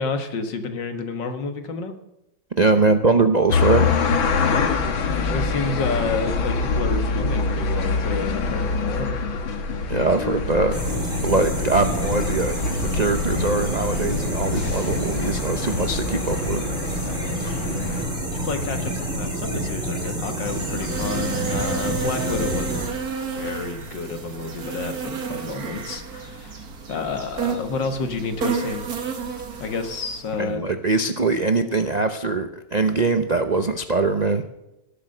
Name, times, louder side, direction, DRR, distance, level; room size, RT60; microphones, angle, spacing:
voice 1, 0.0-1.9 4.4-9.1 17.0-17.7 18.3-22.8 23.4-26.6 26.9-28.9 29.6-30.7, left 4 dB, 65° left, 7 dB, 2.2 m, -30 dB
voice 2, 2.6-3.9 9.9-10.8 11.2-16.6 30.4-34.4, right 3 dB, 80° right, 8 dB, 0.3 m, -22 dB
sound 1, 3.5-18.0, left 4 dB, 80° left, 2.3 m, -25 dB
sound 2, 10.7-22.9, right 1 dB, ahead, 6.4 m, -28 dB
sound 3, 20.4-30.4, right 6 dB, 50° right, 2.1 m, -31 dB
18.5 x 8.5 x 6.7 m, 0.92 s
omnidirectional pair, 2.1 m